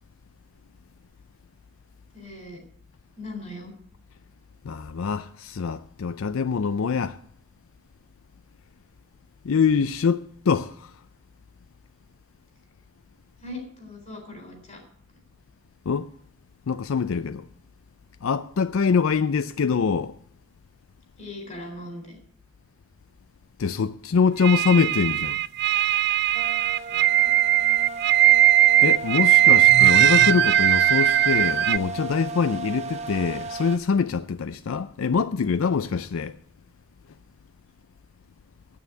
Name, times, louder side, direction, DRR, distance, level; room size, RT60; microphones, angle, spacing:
voice 1, 2.1-2.6 3.2-3.7 13.4-14.8 21.2-22.2 26.7-27.3, left 1 dB, 35° left, 3.8 m, -39 dB
voice 2, 4.6-7.2 9.4-10.9 15.9-16.1 16.7-17.5 18.2-20.1 23.6-25.4 28.8-36.4, left 5 dB, 75° left, 0.4 m, -24 dB
sound 1, 24.4-31.8, right 12 dB, 50° right, 0.4 m, -19 dB
sound 2, 26.3-33.8, right 3 dB, 30° right, 1.1 m, -35 dB
9.4 x 9.2 x 8.2 m
head